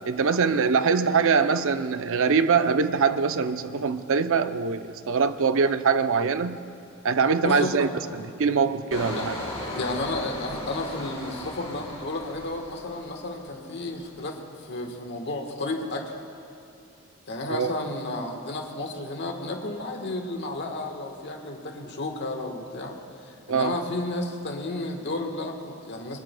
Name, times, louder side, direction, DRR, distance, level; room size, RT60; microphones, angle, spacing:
voice 1, 0.1-6.6 7.0-7.9 8.4-9.4 17.5-17.7 23.5-23.7, right 5 dB, 65° right, 10 dB, 0.5 m, -23 dB
voice 2, 7.4-7.9 9.1-9.2 9.7-14.4 14.6-16.0 17.3-23.0 23.2-26.2, left 2 dB, 55° left, 3 dB, 1.3 m, -32 dB
Engine, 8.9-13.6 13.9-14.3, left 1 dB, 30° left, 3.4 m, -36 dB
21.5 x 21.0 x 2.2 m, 2.7 s
head